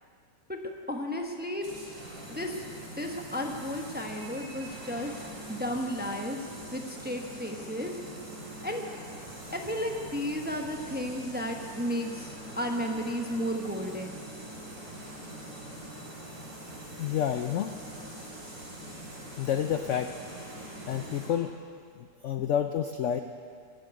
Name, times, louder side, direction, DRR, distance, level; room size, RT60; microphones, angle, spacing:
voice 1, 0.9-1.6 2.3-2.7 2.9-8.0 8.6-8.9 9.5-14.1, equal, 5° right, 2 dB, 0.8 m, -33 dB
sound 1, 1.6-21.3, right 1 dB, 55° right, 4.1 m, -43 dB
voice 2, 17.0-17.7 19.4-20.4 20.9-21.6 22.0-23.2, left 9 dB, 80° left, 7 dB, 0.6 m, -29 dB
16.0 x 7.7 x 9.6 m, 2.2 s
omnidirectional pair, 1.9 m